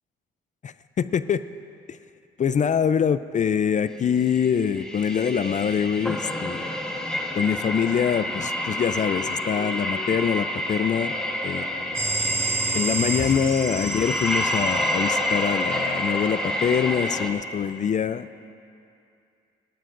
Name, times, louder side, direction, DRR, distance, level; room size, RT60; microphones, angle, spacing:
voice 1, 0.6-1.4 1.9-2.0 2.4-6.7 7.4-11.2 11.4-12.0 12.7-18.3, left 7 dB, 40° left, 13 dB, 0.4 m, -24 dB
sound 1, 4.2-17.3, left 1 dB, 5° left, 1.6 m, -29 dB
sound 2, 4.6-13.3 13.6-13.9 14.2-14.3, left 2 dB, 80° left, 3.1 m, -45 dB
sound 3, 11.9-15.6, right 3 dB, 15° right, 3.0 m, -29 dB
27.5 x 12.5 x 2.6 m, 2.5 s
cardioid pair, 90°, 20 cm